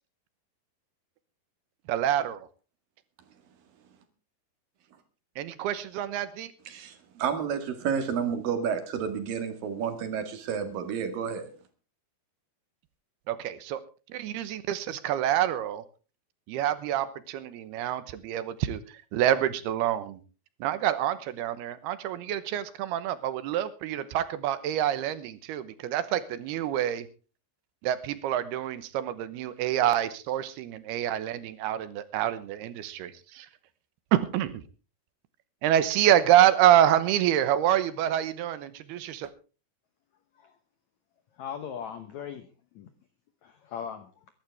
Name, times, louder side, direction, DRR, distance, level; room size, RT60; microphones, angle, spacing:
voice 1, 1.9-2.5 5.4-6.5 13.3-13.8 14.1-15.8 16.5-20.2 20.6-27.1 27.8-33.5 34.1-34.6 35.6-39.3, right 11 dB, 80° right, 14 dB, 2.9 m, -27 dB
voice 2, 6.7-11.5, right 7 dB, 60° right, 8 dB, 3.3 m, -30 dB
voice 3, 41.3-42.9 43.4-44.3, left 8 dB, 75° left, 9 dB, 1.7 m, -39 dB
22.5 x 12.0 x 3.4 m, 0.34 s
omnidirectional pair, 4.7 m